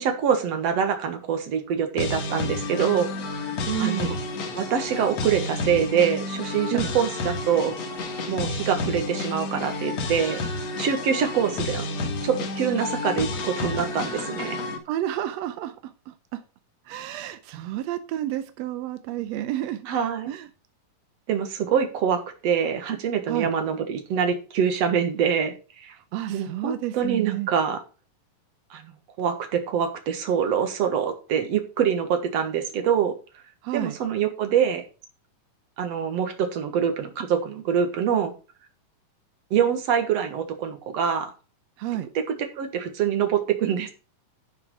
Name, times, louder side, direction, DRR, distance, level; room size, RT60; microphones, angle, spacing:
voice 1, 0.0-3.1 3.8-4.1 4.5-7.8 8.3-10.4 10.8-11.9 12.2-14.6 19.9-20.3 21.3-25.9 26.3-27.8 28.7-28.9 29.2-33.1 33.7-34.8 35.8-38.3 39.5-41.3 42.3-43.9, right 8 dB, 55° right, 6 dB, 2.4 m, -25 dB
sound 1, 2.0-14.8, left 3 dB, 55° left, 2.6 m, -30 dB
voice 2, 3.7-4.2 6.7-6.9 14.9-16.4 16.9-19.9 20.3-20.5 23.3-23.5 26.0-27.5 33.6-34.0 41.8-42.1, right 12 dB, 75° right, 10 dB, 1.6 m, -30 dB
11.5 x 5.9 x 4.7 m, 0.34 s
omnidirectional pair, 3.7 m